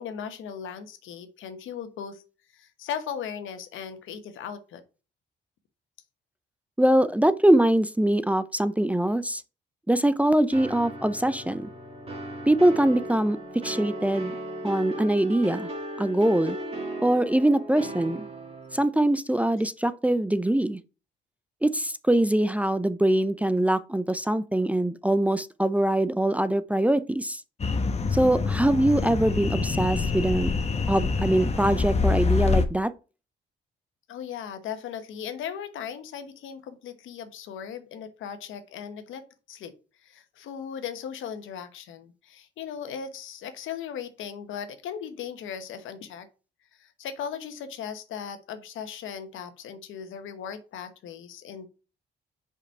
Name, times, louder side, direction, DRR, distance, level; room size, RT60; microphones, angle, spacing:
voice 1, 0.0-2.2 2.5-4.8 34.1-39.7 40.0-46.3 46.8-51.7, left 8 dB, 80° left, 1.2 m, -37 dB
voice 2, 6.8-9.4 9.9-11.7 12.5-13.4 13.6-14.3 14.6-15.7 16.0-16.6 17.0-18.3 18.7-20.8 21.6-27.4 28.1-30.5 30.9-32.9, right 1 dB, 5° right, 0.5 m, -23 dB
sound 1, 10.5-18.8, right 1 dB, 30° right, 2.6 m, -36 dB
sound 2, 27.6-32.7, left 4 dB, 30° left, 1.1 m, -26 dB
5.3 x 5.1 x 5.5 m
cardioid pair, 90°, 20 cm